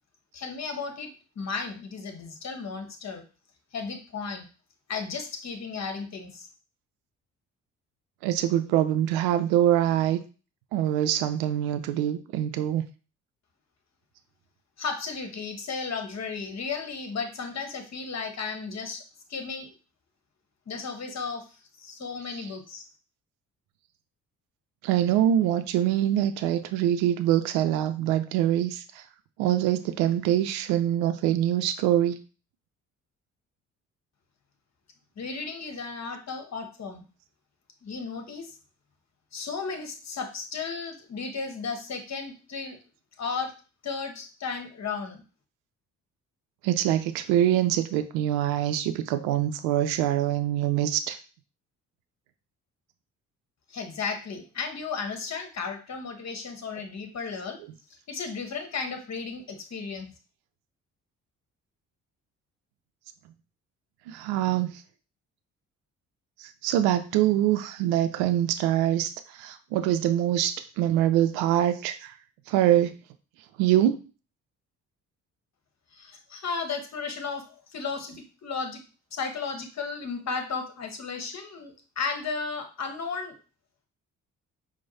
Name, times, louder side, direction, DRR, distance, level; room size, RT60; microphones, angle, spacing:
voice 1, 0.3-1.1 1.4-3.2 3.7-4.5 4.9-6.5 14.8-19.0 19.3-19.7 20.7-21.4 21.8-22.8 35.2-37.0 37.8-38.5 39.3-42.8 43.2-43.5 43.8-45.2 53.7-57.6 58.1-60.1 76.0-77.4 77.7-78.1 78.4-78.8 79.1-83.4, left 5 dB, 40° left, 6 dB, 1.1 m, -34 dB
voice 2, 8.2-10.2 10.7-12.8 22.3-22.5 24.8-29.0 29.4-32.2 46.6-51.2 64.1-64.7 66.4-72.1 72.5-72.9 73.6-74.0, right 12 dB, 70° right, 10 dB, 0.5 m, -24 dB
4.5 x 2.1 x 4.1 m, 0.35 s
hypercardioid pair, 45°, 40 cm